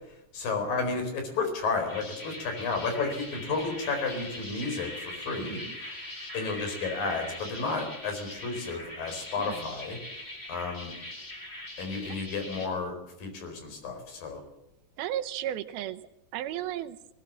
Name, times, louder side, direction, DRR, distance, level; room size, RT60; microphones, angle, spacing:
voice 1, 0.3-6.0 6.3-10.0 10.5-10.9 11.8-14.4, left 4 dB, 65° left, 5 dB, 6.2 m, -32 dB
sound 1, 1.6-12.7, left 1 dB, 15° left, 3.6 m, -41 dB
voice 2, 5.4-5.8 9.4-9.7 12.1-12.2 15.0-16.0 16.3-17.0, right 12 dB, 80° right, 13 dB, 2.7 m, -34 dB
20.0 x 19.5 x 7.5 m, 0.85 s
omnidirectional pair, 4.4 m